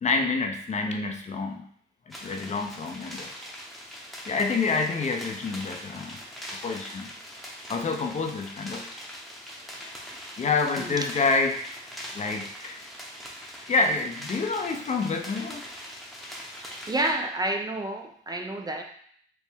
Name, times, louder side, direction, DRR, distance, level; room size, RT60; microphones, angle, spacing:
voice 1, 0.0-1.7 2.1-3.3 4.3-6.2 6.6-7.1 7.7-8.9 10.4-11.6 12.1-12.8 13.7-15.7, left 4 dB, 35° left, 4 dB, 0.5 m, -27 dB
sound 1, 2.1-17.1, equal, ahead, 0.8 m, -42 dB
voice 2, 16.9-18.8, right 1 dB, 20° right, 3 dB, 0.4 m, -29 dB
4.4 x 2.1 x 3.4 m, 0.62 s
cardioid pair, 90°, 20 cm